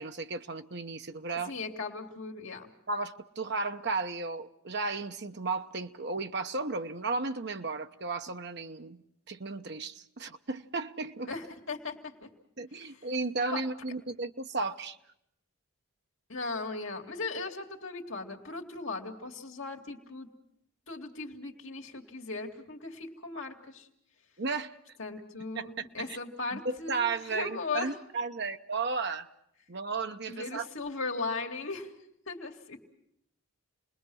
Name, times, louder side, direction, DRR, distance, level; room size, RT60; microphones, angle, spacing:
voice 1, 0.0-1.5 2.9-11.3 12.6-15.0 24.4-24.7 25.5-26.2 26.5-29.3 29.7-30.7, right 4 dB, 50° right, 0.9 m, -34 dB
voice 2, 1.3-2.7 11.3-12.3 12.8-13.0 13.5-13.6 16.3-20.3 20.9-23.9 25.0-27.9 30.3-31.9 32.3-32.8, left 3 dB, 60° left, 2.6 m, -38 dB
28.5 x 20.5 x 6.4 m
head